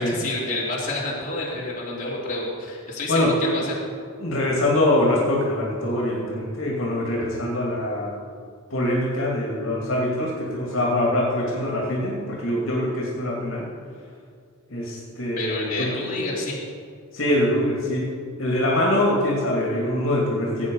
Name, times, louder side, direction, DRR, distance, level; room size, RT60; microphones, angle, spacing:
voice 1, 0.0-3.7 15.4-16.6, left 2 dB, 35° left, -5 dB, 3.1 m, -29 dB
voice 2, 4.2-8.1 8.7-13.7 14.7-15.9 17.1-18.0 18.4-20.7, left 1 dB, 70° left, -3 dB, 2.4 m, -23 dB
16.5 x 8.9 x 5.4 m, 2.2 s
head